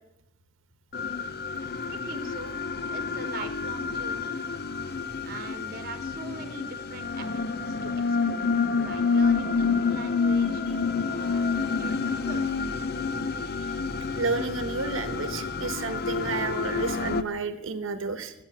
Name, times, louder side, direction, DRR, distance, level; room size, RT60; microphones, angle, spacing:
sound 1, 0.9-17.2, left 4 dB, 50° left, 0.6 m, -28 dB
voice 1, 1.9-2.6 2.9-4.4 5.2-8.4 8.8-10.6 11.1-12.4, right 3 dB, 50° right, 9 dB, 1.3 m, -42 dB
voice 2, 14.2-18.3, right 4 dB, 90° right, 10 dB, 1.0 m, -31 dB
13.5 x 7.5 x 8.9 m, 0.88 s
head